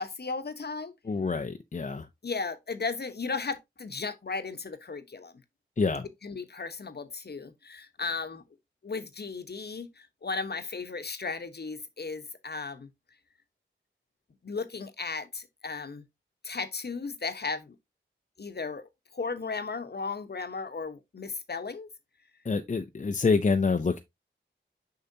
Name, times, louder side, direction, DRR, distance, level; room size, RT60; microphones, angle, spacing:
voice 1, 0.0-0.9 2.2-5.3 6.2-8.4 8.8-12.9 14.4-16.0 16.4-17.7 18.4-21.9, left 4 dB, 55° left, 1.1 m, -35 dB
voice 2, 1.0-2.1 5.8-6.1 22.4-24.0, left 4 dB, 35° left, 0.6 m, -27 dB
6.7 x 5.6 x 2.7 m
wide cardioid pair, 70°, 21 cm